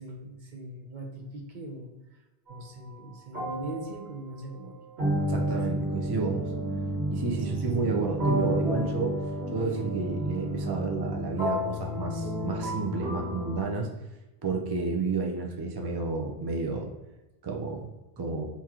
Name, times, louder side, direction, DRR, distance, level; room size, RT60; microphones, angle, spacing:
voice 1, 0.0-2.2 2.5-4.8 5.1-5.6 7.5-7.7, right 1 dB, 50° right, 2 dB, 0.8 m, -41 dB
sound 1, 2.5-2.7 3.3-13.6, right 1 dB, 80° right, 1.5 m, -31 dB
voice 2, 5.3-6.5 7.1-9.2 9.5-13.9 14.4-16.9 17.4-17.9 18.2-18.5, right 4 dB, 35° right, 1 dB, 0.4 m, -31 dB
4.5 x 2.9 x 3.6 m, 1.0 s
omnidirectional pair, 1.1 m